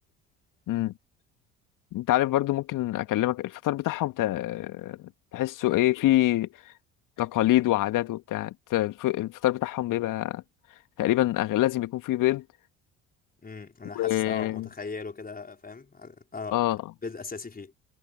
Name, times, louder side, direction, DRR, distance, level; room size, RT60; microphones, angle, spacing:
voice 1, 1.9-6.5 7.2-10.4 11.0-12.4 13.9-14.7 16.5-16.8, left 15 dB, 55° left, 2.4 m, -26 dB
voice 2, 13.4-16.6 17.0-17.7, left 4 dB, 20° left, 4.5 m, -38 dB
figure-of-eight pair, 55°, 39 cm